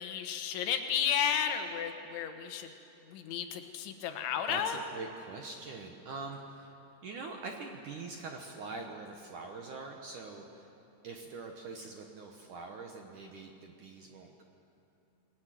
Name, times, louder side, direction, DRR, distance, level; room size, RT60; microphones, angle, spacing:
voice 1, 0.0-2.7 3.1-4.8, left 8 dB, 90° left, 6 dB, 3.8 m, -33 dB
voice 2, 4.5-6.7 7.0-10.7 11.0-14.4, right 3 dB, 65° right, 2 dB, 2.0 m, -44 dB
28.0 x 21.0 x 7.7 m, 2.9 s
omnidirectional pair, 5.2 m